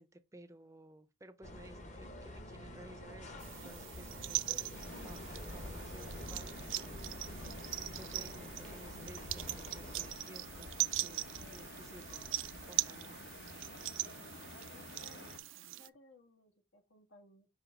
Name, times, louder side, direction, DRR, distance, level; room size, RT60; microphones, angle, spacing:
voice 1, 0.0-4.6 5.0-12.4 12.6-13.2, right 1 dB, 15° right, 0.5 m, -56 dB
sound 1, 1.4-10.2, left 1 dB, 35° left, 1.0 m, -48 dB
sound 2, 3.4-15.9, right 17 dB, 85° right, 0.4 m, -41 dB
sound 3, 4.7-15.4, left 3 dB, 60° left, 0.9 m, -51 dB
voice 2, 14.5-15.4 15.8-17.5, left 2 dB, 85° left, 1.8 m, -62 dB
5.8 x 4.9 x 3.6 m
head